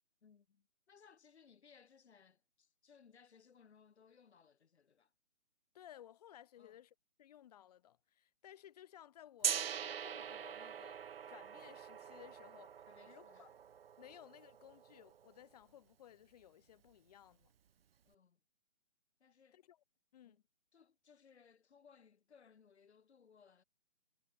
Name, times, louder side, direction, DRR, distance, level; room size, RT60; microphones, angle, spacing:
voice 1, 0.2-5.1 6.6-6.8 12.9-13.5 18.0-18.4 19.2-19.6 20.2-20.4 20.7-23.6, left 6 dB, 60° left, 4.5 m, -65 dB
voice 2, 5.7-12.8 13.1-13.5 14.0-17.5 19.5-19.8 20.1-20.4, left 11 dB, 30° left, 1.5 m, -59 dB
Gong, 9.4-15.3, right 8 dB, 50° right, 1.0 m, -43 dB
hypercardioid pair, 150°, 37 cm